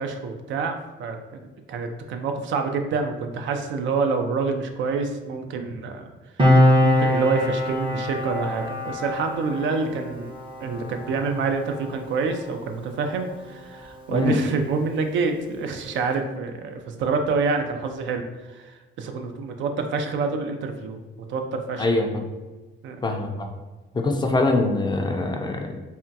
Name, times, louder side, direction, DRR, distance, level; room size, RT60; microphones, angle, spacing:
voice 1, 0.0-6.1 6.8-10.3 10.6-21.0 21.3-21.9 22.8-23.0, right 4 dB, 75° right, 5 dB, 0.4 m, -27 dB
Piano, 6.4-13.4 13.7-13.9, left 1 dB, 25° right, 0.6 m, -24 dB
voice 2, 21.8-22.2 23.0-23.5 23.9-25.8, left 2 dB, 20° left, 3 dB, 0.4 m, -23 dB
3.5 x 2.2 x 2.7 m, 1.2 s
cardioid pair, 90°, 20 cm